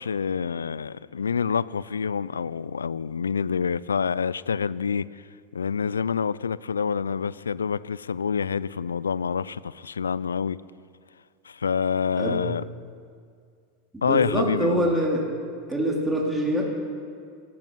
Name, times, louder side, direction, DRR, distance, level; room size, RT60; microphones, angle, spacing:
voice 1, 0.0-5.1 5.5-10.6 11.5-12.6 14.0-14.9, left 6 dB, 85° left, 0.3 m, -27 dB
voice 2, 13.9-15.2 15.7-16.7, right 1 dB, 10° right, 3.8 m, -25 dB
14.0 x 13.0 x 5.8 m
hypercardioid pair, 90°, 0 cm